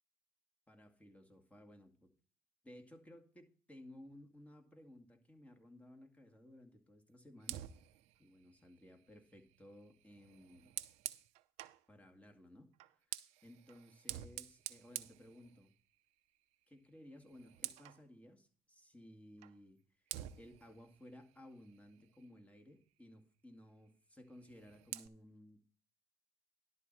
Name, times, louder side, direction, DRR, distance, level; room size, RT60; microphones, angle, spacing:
voice 1, 0.7-2.1 2.6-7.6 8.2-10.7 11.9-12.7 13.1-15.7 16.7-25.6, left 1 dB, 10° left, 3 dB, 2.2 m, -58 dB
Fire, 7.4-11.8 12.7-16.0 16.3-16.6 16.9-18.0 19.4-19.6 20.1-22.4 24.3-25.1, right 15 dB, 80° right, 0.6 m, -49 dB
11.5 x 4.2 x 7.6 m, 0.42 s
supercardioid pair, 80°, 11 cm